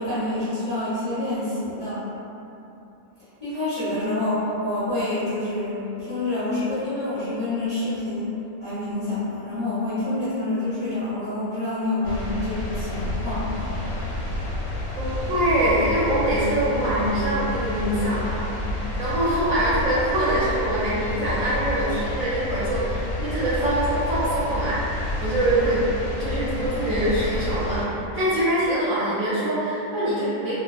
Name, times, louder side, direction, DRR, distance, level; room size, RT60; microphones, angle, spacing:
voice 1, 0.0-2.0 3.4-8.3 8.6-13.5, left 2 dB, 35° left, -15 dB, 0.7 m, -27 dB
sound 1, 12.0-27.9, left 1 dB, 70° left, 0.8 m, -29 dB
voice 2, 15.0-25.8 26.1-30.5, right 1 dB, 65° right, -11 dB, 0.8 m, -24 dB
2.7 x 2.3 x 2.3 m, 2.9 s
omnidirectional pair, 1.7 m